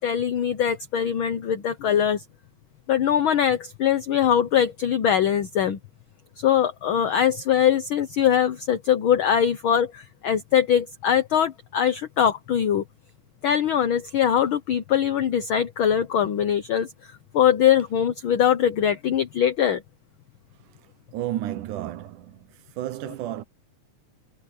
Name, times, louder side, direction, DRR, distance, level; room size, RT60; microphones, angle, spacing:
voice 1, 0.0-2.2 2.9-5.8 6.4-12.8 13.4-16.9 17.3-19.8, left 9 dB, 70° left, 1.2 m, -22 dB
voice 2, 21.1-22.5 22.8-23.4, right 13 dB, 85° right, 2.5 m, -31 dB
omnidirectional pair, 3.5 m